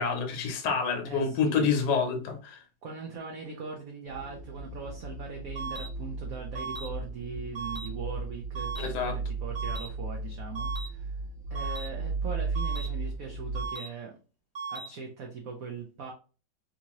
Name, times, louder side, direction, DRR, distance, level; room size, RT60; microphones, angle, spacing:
voice 1, 0.0-2.6 8.8-9.2, left 5 dB, 65° left, 1.3 m, -28 dB
voice 2, 1.0-1.7 2.8-11.1 11.5-14.2 14.7-16.1, right 4 dB, 65° right, 0.9 m, -40 dB
sound 1, 4.1-13.7, right 4 dB, 40° left, 0.9 m, -35 dB
sound 2, 5.6-5.9 6.6-6.9 7.6-7.9 8.6-8.9 9.6-9.9 10.6-10.9 11.6-11.9 12.6-12.9 13.6-13.9 14.6-14.9, right 4 dB, 45° right, 1.0 m, -36 dB
3.6 x 2.7 x 2.9 m
omnidirectional pair, 2.1 m